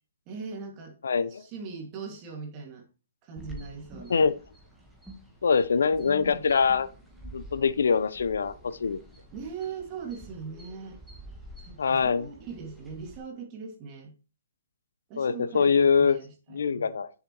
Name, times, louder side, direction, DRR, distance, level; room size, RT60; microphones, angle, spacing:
voice 1, 0.3-1.0 1.3-2.9 3.2-4.2 6.0-6.5 9.3-11.0 11.6-14.1 15.1-17.0, right 5 dB, 30° right, 2.2 m, -40 dB
voice 2, 1.0-1.4 4.1-4.3 5.4-6.9 7.3-9.0 11.8-12.3 15.2-16.2 16.5-17.1, left 5 dB, 80° left, 0.8 m, -24 dB
sound 1, 3.4-13.2, right 1 dB, ahead, 1.9 m, -48 dB
11.0 x 6.8 x 3.1 m
hypercardioid pair, 150°, 0 cm